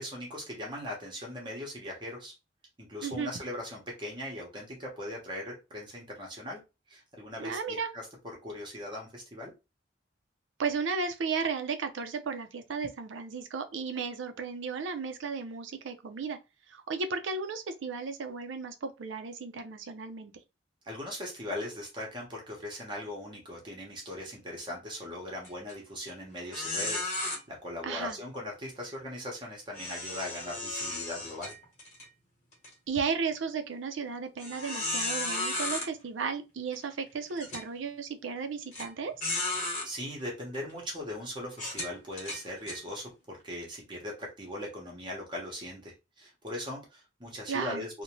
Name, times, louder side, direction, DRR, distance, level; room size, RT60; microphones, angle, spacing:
voice 1, 0.0-2.3 2.8-6.6 6.9-8.1 8.4-9.5 20.8-27.1 27.5-31.5 39.8-48.0, left 1 dB, 25° right, 0.8 m, -39 dB
voice 2, 7.4-7.9 10.6-16.4 16.7-20.3 27.8-28.2 32.9-39.1 47.5-47.8, right 5 dB, 85° right, 0.5 m, -34 dB
sound 1, 25.4-25.7 26.1-26.2 26.5-27.4 29.7-32.1 32.5-32.7 33.3-33.4 34.4-35.9 36.7-36.8 37.4-37.6 38.7-38.9 39.2-39.9 40.5-40.7 41.5-42.8, left 2 dB, 40° left, 1.1 m, -34 dB
2.6 x 2.1 x 2.9 m
head